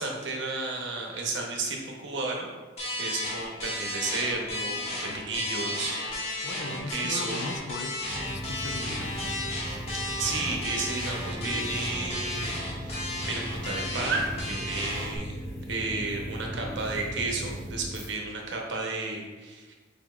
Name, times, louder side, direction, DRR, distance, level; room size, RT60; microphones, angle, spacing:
voice 1, 0.0-2.5 3.0-7.4 10.2-15.4 15.7-19.7, right 3 dB, 75° right, 0 dB, 0.8 m, -33 dB
sound 1, 2.8-15.2, left 1 dB, 35° left, 1.1 m, -34 dB
voice 2, 6.4-9.3, left 2 dB, 75° left, 4 dB, 0.5 m, -38 dB
sound 2, 8.0-18.1, equal, 55° left, 0.9 m, -37 dB
5.0 x 4.1 x 2.3 m, 1.3 s
head